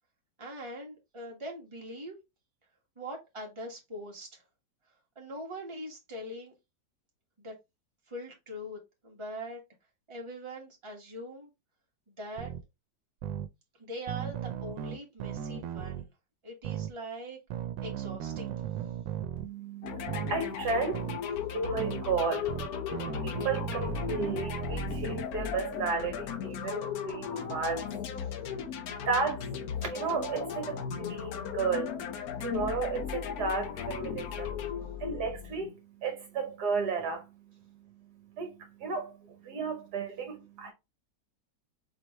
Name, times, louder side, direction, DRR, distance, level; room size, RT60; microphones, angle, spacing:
voice 1, 0.4-2.2 3.0-4.4 5.1-6.5 7.4-7.5 8.1-9.6 10.1-11.5 12.1-12.5 13.8-16.1 16.4-17.4 17.8-18.6 28.2-28.3, equal, 15° right, 1.4 m, -42 dB
sound 1, 12.4-12.6 13.2-13.5 14.1-16.1 16.6-16.9 17.5-19.5 20.1-20.3 20.9-21.2 21.8-22.0 22.5-25.3, right 10 dB, 85° right, 1.3 m, -36 dB
voice 2, 19.4-40.7, right 4 dB, 65° right, 1.4 m, -34 dB
sound 2, 19.8-35.7, left 8 dB, 65° left, 1.0 m, -36 dB
4.6 x 3.3 x 3.0 m
omnidirectional pair, 1.9 m